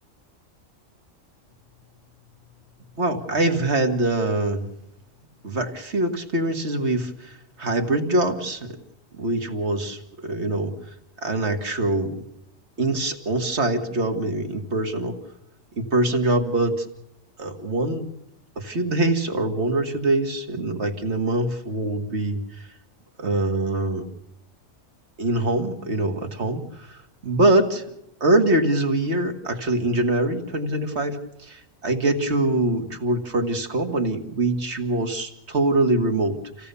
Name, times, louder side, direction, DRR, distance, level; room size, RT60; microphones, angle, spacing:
voice 1, 3.0-4.7 5.4-7.3 7.6-8.8 9.2-10.7 11.2-12.2 12.8-15.2 15.8-16.8 17.4-18.1 18.6-22.4 23.2-24.1 25.2-27.0 27.2-27.8 28.2-36.7, right 2 dB, 55° right, 5 dB, 2.2 m, -24 dB
28.0 x 16.5 x 6.9 m, 0.87 s
omnidirectional pair, 1.4 m